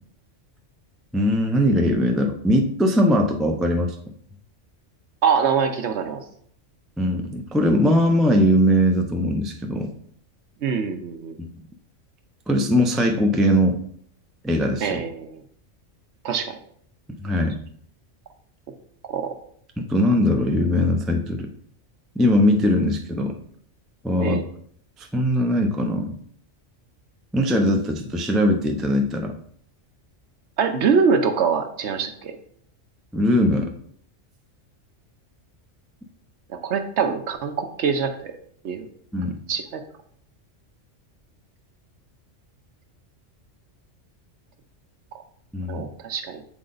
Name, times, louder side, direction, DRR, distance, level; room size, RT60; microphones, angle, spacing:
voice 1, 1.1-4.0 7.0-9.9 11.4-11.5 12.5-13.8 14.4-15.0 17.2-17.6 19.8-21.5 22.2-23.4 24.0-24.5 25.0-26.1 27.3-29.3 33.1-33.7 39.1-39.4 45.5-45.8, equal, ahead, 3 dB, 0.3 m, -20 dB
voice 2, 5.2-6.2 10.6-11.4 14.8-15.4 16.2-16.6 19.1-19.3 24.2-24.4 30.6-32.4 36.5-38.3 38.6-38.9 39.5-39.8 45.7-46.4, right 6 dB, 65° right, 6 dB, 1.0 m, -24 dB
7.6 x 4.0 x 3.9 m, 0.62 s
omnidirectional pair, 1.3 m